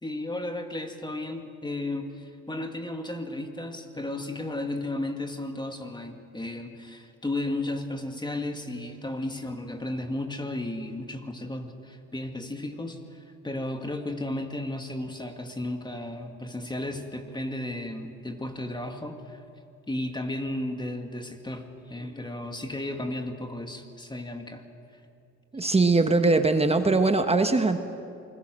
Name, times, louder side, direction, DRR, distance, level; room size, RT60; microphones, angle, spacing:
voice 1, 0.0-19.4 19.9-24.6, left 1 dB, 15° left, 5 dB, 2.1 m, -34 dB
voice 2, 25.5-27.8, right 3 dB, 20° right, 7 dB, 1.3 m, -21 dB
28.0 x 21.0 x 6.4 m, 2.5 s
cardioid pair, 90°, 30 cm